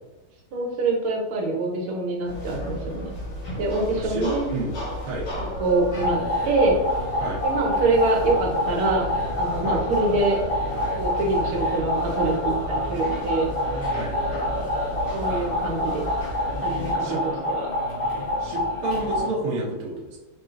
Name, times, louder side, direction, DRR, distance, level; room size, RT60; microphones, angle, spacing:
voice 1, 0.5-3.2 3.5-4.5 5.6-6.2 6.4-6.8 7.4-9.1 9.4-10.4 11.0-13.5 15.1-16.1 16.6-17.7, right 2 dB, 75° right, -1 dB, 1.5 m, -25 dB
sound 1, 2.2-16.9, left 1 dB, 75° left, 2.5 m, -34 dB
voice 2, 4.0-4.7 5.0-5.3 7.2-7.4 9.6-9.8 13.9-14.2 17.0-17.2 18.4-20.2, right 2 dB, 55° right, -3 dB, 0.9 m, -30 dB
sound 2, 5.9-19.3, left 1 dB, 40° left, 0.9 m, -27 dB
4.8 x 2.7 x 2.5 m, 1.2 s
omnidirectional pair, 2.4 m